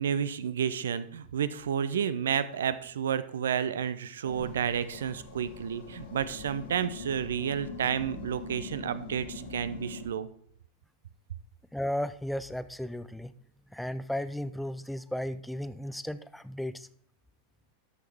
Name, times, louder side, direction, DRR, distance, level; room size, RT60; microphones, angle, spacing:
voice 1, 0.0-10.3, right 8 dB, 65° right, 14 dB, 0.5 m, -31 dB
sound 1, 4.2-10.1, left 3 dB, 55° left, 1.3 m, -43 dB
voice 2, 11.7-13.3 13.7-16.9, left 1 dB, ahead, 14 dB, 0.4 m, -34 dB
12.0 x 6.3 x 3.5 m, 0.62 s
figure-of-eight pair, 90°, 0 cm